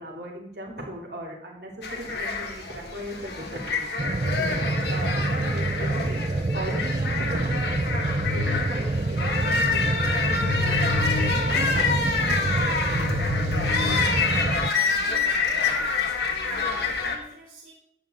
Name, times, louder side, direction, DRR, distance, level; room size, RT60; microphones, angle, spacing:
voice 1, 0.0-4.5 4.9-7.7 8.3-13.4 13.9-14.1, right 1 dB, 65° right, -2 dB, 3.1 m, -38 dB
sound 1, 1.8-17.1, left 4 dB, 65° left, 1.6 m, -27 dB
sound 2, 4.0-14.7, right 2 dB, 30° right, 0.4 m, -27 dB
sound 3, 7.6-14.6, left 7 dB, 80° left, 0.4 m, -33 dB
voice 2, 15.0-16.2 16.5-17.7, equal, 45° right, -5 dB, 1.6 m, -45 dB
10.5 x 9.2 x 3.8 m, 0.75 s
head